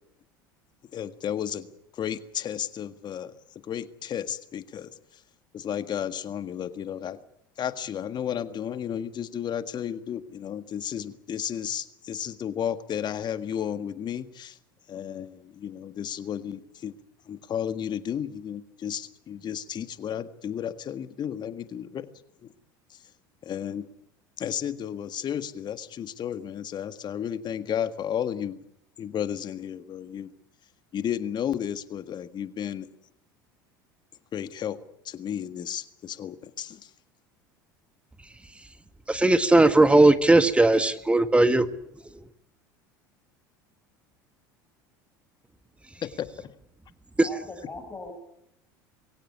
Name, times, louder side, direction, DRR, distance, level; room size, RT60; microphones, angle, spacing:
voice 1, 0.9-1.7 1.9-3.3 3.6-4.9 5.5-7.2 7.6-14.6 14.9-16.9 17.3-22.1 22.9-23.0 23.4-23.9 24.4-28.6 29.0-30.3 30.9-32.9 34.3-34.8 35.0-36.9 46.0-46.5, left 9 dB, 40° left, 11 dB, 1.7 m, -33 dB
voice 2, 39.1-41.7 47.2-47.3, right 2 dB, 10° right, 12 dB, 1.4 m, -18 dB
voice 3, 47.2-48.1, left 3 dB, 20° left, 0 dB, 5.7 m, -39 dB
23.0 x 16.5 x 9.7 m, 0.76 s
hypercardioid pair, 80°, 11 cm